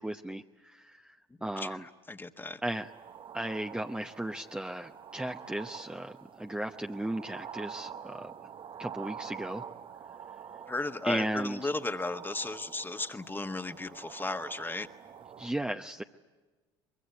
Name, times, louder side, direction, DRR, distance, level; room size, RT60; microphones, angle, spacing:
voice 1, 0.0-1.9 2.6-2.9 3.3-8.3 8.8-9.7 11.0-11.6 15.4-16.0, right 1 dB, 5° right, 4 dB, 0.8 m, -36 dB
voice 2, 1.6-2.6 10.7-14.9, left 2 dB, 15° left, 8 dB, 1.5 m, -35 dB
sound 1, 2.6-15.5, right 8 dB, 45° right, 0.9 m, -47 dB
24.0 x 22.0 x 9.7 m, 1.2 s
hypercardioid pair, 60°, 12 cm